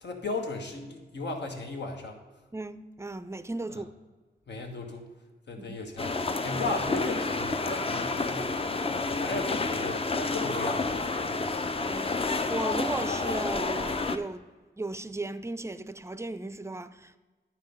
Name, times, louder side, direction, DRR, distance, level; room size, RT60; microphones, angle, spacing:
voice 1, 0.0-2.2 3.7-3.8 4.5-5.1 5.5-10.9 11.2-11.4, left 2 dB, 80° left, 1.3 m, -36 dB
voice 2, 2.5-3.9 5.6-5.8 11.8-14.4 14.8-17.2, right 2 dB, 15° right, 0.4 m, -36 dB
sound 1, 6.0-14.2, left 3 dB, 35° left, 0.5 m, -30 dB
10.5 x 4.6 x 5.2 m
wide cardioid pair, 85°, 18 cm